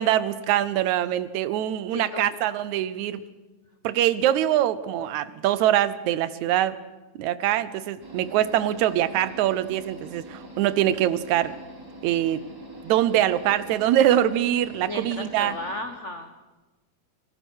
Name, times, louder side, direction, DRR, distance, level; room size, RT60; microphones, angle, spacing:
voice 1, 0.0-3.2 3.8-6.8 7.2-11.6 12.0-12.4 12.8-15.6, right 12 dB, 80° right, 16 dB, 2.2 m, -23 dB
voice 2, 1.9-2.3 4.9-5.1 14.8-16.5, left 1 dB, 85° left, 6 dB, 0.6 m, -35 dB
sound 1, 8.0-15.8, equal, 5° right, 2.9 m, -44 dB
24.0 x 19.0 x 6.4 m, 1.2 s
omnidirectional pair, 3.3 m